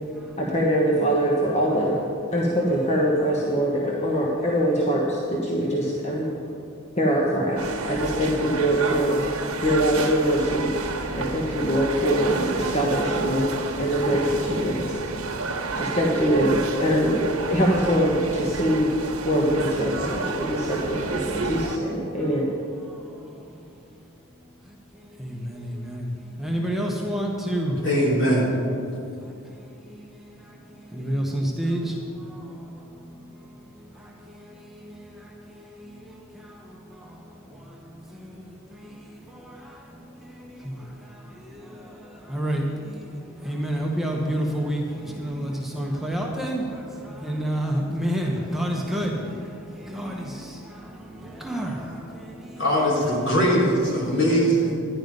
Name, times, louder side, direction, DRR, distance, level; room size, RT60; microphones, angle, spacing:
voice 1, 0.4-2.0 2.3-6.3 7.0-9.4 9.6-10.7 11.1-15.0 15.8-17.2 17.5-18.9 19.2-22.5, equal, 30° left, -3 dB, 1.2 m, -23 dB
sound 1, 7.6-21.8, right 3 dB, 75° right, 1.2 m, -30 dB
voice 2, 25.2-26.0 26.4-27.8 30.9-31.9 42.3-42.6 43.4-46.6 47.2-49.1 49.9-50.3 51.4-51.7, right 1 dB, ahead, -2 dB, 1.0 m, -27 dB
voice 3, 27.8-28.6 52.6-54.7, equal, 60° left, -4 dB, 3.2 m, -21 dB
11.5 x 10.5 x 5.2 m, 2.6 s
head